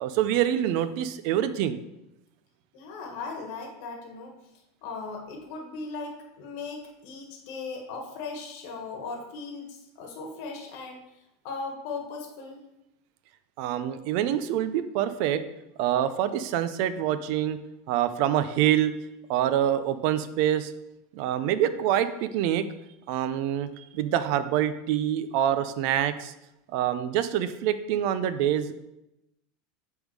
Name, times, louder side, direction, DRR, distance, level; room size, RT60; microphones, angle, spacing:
voice 1, 0.0-1.8 13.6-15.4 15.8-17.6 17.9-18.9 19.3-20.7 21.1-22.6 23.1-26.3 26.7-28.7, right 11 dB, 55° right, 12 dB, 0.5 m, -26 dB
voice 2, 2.7-4.3 4.8-11.0 11.4-12.6, left 4 dB, 60° left, 2 dB, 1.3 m, -38 dB
7.8 x 3.6 x 4.7 m, 0.90 s
supercardioid pair, 155°, 0 cm